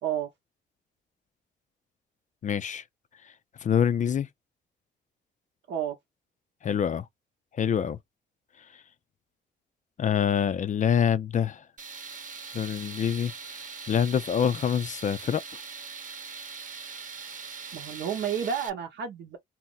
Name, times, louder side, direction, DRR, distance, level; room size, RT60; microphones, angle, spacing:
voice 1, 2.4-2.8 3.6-4.3 6.6-7.1 7.5-8.0 10.0-11.6 12.5-13.3 13.9-15.4, left 8 dB, 40° left, 0.4 m, -25 dB
Tools, 11.8-18.7, right 5 dB, 40° right, 0.9 m, -41 dB
voice 2, 17.7-19.4, right 8 dB, 70° right, 0.8 m, -31 dB
2.8 x 2.1 x 3.8 m
cardioid pair, 90°, 20 cm